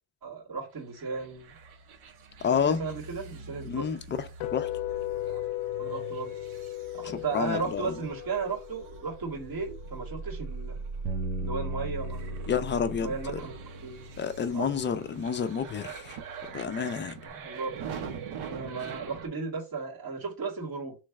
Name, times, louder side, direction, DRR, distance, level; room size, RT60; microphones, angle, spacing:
voice 1, 0.2-1.5 2.5-3.9 5.3-5.4 5.8-6.4 6.9-10.8 11.4-12.5 13.0-13.5 13.8-14.1 14.5-14.8 17.2-17.8 18.4-21.0, right 5 dB, 45° right, 2.1 m, -35 dB
sound 1, 0.9-19.3, right 5 dB, 90° right, 1.2 m, -42 dB
voice 2, 2.4-2.8 3.7-4.7 7.0-7.9 12.5-13.1 14.2-16.2 16.5-17.2, left 7 dB, 25° left, 0.4 m, -29 dB
sound 2, 4.4-10.5, left 16 dB, 80° left, 0.6 m, -37 dB
Bass guitar, 11.0-15.5 16.1-17.3, right 1 dB, 65° right, 1.2 m, -40 dB
3.2 x 3.1 x 4.7 m
cardioid pair, 145°, 47 cm